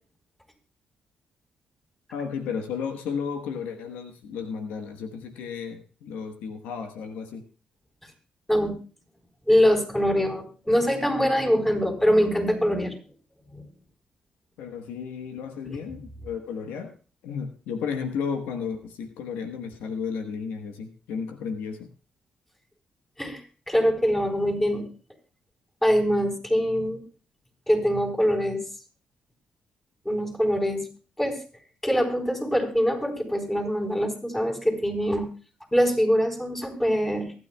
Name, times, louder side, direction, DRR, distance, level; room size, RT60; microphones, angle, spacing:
voice 1, 2.1-7.4 14.6-16.9 17.2-21.9, left 6 dB, 90° left, 6 dB, 1.3 m, -33 dB
voice 2, 9.5-12.9 13.5-13.6 15.7-15.8 23.2-23.4 23.7-24.8 25.8-27.0 27.7-28.6 30.0-30.9 31.2-31.4 31.8-35.3 35.7-37.3, equal, 10° left, 3 dB, 4.1 m, -23 dB
23.0 x 9.6 x 2.3 m, 0.37 s
supercardioid pair, 65°, 3 cm